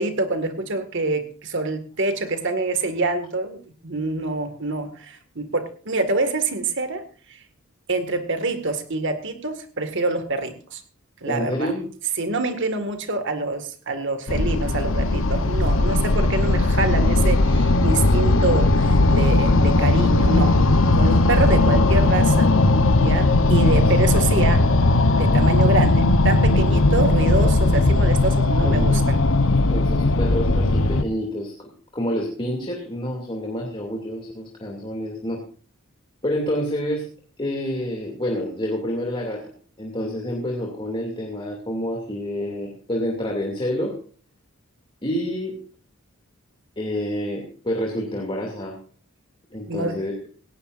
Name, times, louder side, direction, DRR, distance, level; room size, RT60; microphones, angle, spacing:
voice 1, 0.0-7.0 7.3-7.4 7.9-10.8 11.2-11.7 12.2-20.6 20.9-22.5 23.0-24.7 25.1-29.2 49.7-50.0, right 2 dB, 60° right, 8 dB, 2.0 m, -26 dB
voice 2, 11.2-11.9 28.5-29.3 29.7-35.4 36.2-37.1 37.4-39.4 39.8-44.0 45.0-45.6 46.8-48.8 49.5-50.3, equal, 25° left, 0 dB, 2.7 m, -28 dB
sound 1, 14.3-31.0, left 2 dB, 65° left, 1.0 m, -18 dB
18.0 x 17.5 x 2.6 m, 0.41 s
head